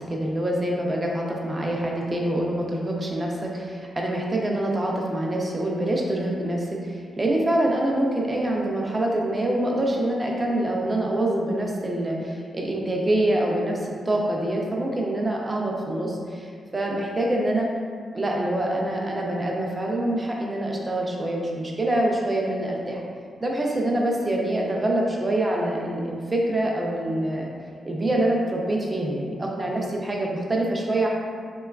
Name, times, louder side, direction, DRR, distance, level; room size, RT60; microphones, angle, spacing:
voice 1, 0.1-13.8 14.1-17.7 18.1-23.0 23.4-27.5 27.8-31.1, right 1 dB, 20° right, -1 dB, 0.4 m, -25 dB
3.7 x 2.2 x 2.3 m, 2.1 s
wide cardioid pair, 140°, 0 cm